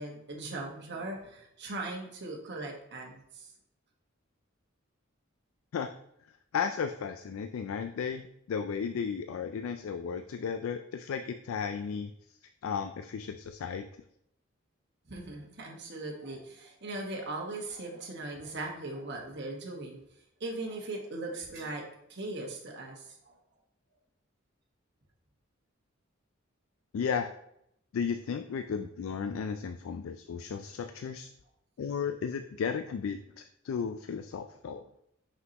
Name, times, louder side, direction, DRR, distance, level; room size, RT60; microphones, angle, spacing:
voice 1, 0.0-3.5 15.1-20.0 20.4-23.3, right 2 dB, 60° right, 0 dB, 1.3 m, -39 dB
voice 2, 6.5-12.1 12.6-13.8 26.9-27.3 27.9-31.3 31.8-34.8, left 6 dB, 90° left, 8 dB, 0.3 m, -34 dB
5.8 x 5.6 x 2.9 m, 0.76 s
head